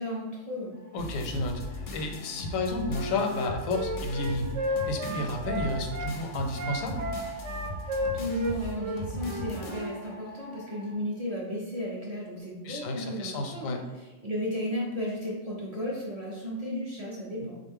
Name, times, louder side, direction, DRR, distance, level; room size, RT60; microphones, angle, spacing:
voice 1, 0.0-0.8 8.1-17.5, equal, 40° right, -4 dB, 0.5 m, -34 dB
sound 1, 0.7-10.9, left 2 dB, 10° left, 0.5 m, -50 dB
voice 2, 0.9-7.1 12.6-13.8, left 2 dB, 85° left, 4 dB, 1.0 m, -32 dB
sound 2, 1.0-10.1, left 2 dB, 55° left, 0.6 m, -39 dB
Wind instrument woodwind instrument, 2.9-6.1 6.5-9.9, equal, 70° right, 0.9 m, -33 dB
3.8 x 2.4 x 3.5 m, 1.2 s
omnidirectional pair, 1.4 m